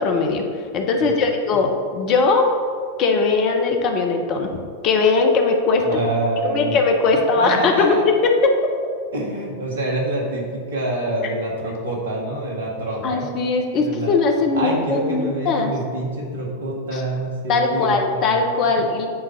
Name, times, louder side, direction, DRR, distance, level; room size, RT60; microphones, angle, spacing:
voice 1, 0.0-2.5 3.0-5.8 6.4-8.1 13.0-15.7 16.9-17.0 17.5-19.1, left 4 dB, 40° left, 4 dB, 0.9 m, -20 dB
voice 2, 5.8-6.8 7.4-8.0 9.1-13.3 13.7-14.1 14.6-18.4, right 1 dB, 65° right, -2 dB, 1.9 m, -26 dB
8.8 x 3.9 x 5.8 m, 2.1 s
figure-of-eight pair, 90°, 0 cm